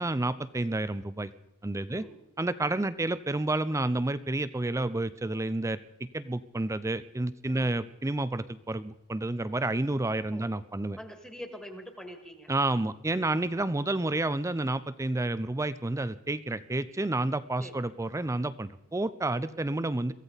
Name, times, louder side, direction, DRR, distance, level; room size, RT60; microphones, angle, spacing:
voice 1, 0.0-1.3 1.6-2.0 2.4-11.0 12.5-20.1, right 2 dB, 15° right, 14 dB, 0.5 m, -30 dB
voice 2, 1.9-2.2 7.5-7.8 10.3-10.5 11.0-12.5 17.6-17.9, equal, 5° left, 4 dB, 1.9 m, -44 dB
23.0 x 15.0 x 4.0 m, 0.83 s
head